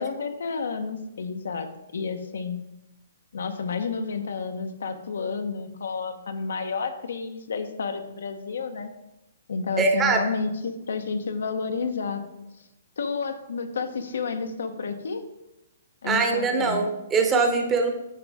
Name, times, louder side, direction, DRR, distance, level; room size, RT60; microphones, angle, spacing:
voice 1, 0.0-2.6 3.3-8.9 9.5-12.2 13.0-15.2 16.0-16.9, left 5 dB, 80° left, 7 dB, 0.9 m, -30 dB
voice 2, 9.8-10.2 16.0-17.9, right 4 dB, 15° right, 4 dB, 0.9 m, -22 dB
9.6 x 5.9 x 3.5 m, 0.91 s
hypercardioid pair, 160°, 0 cm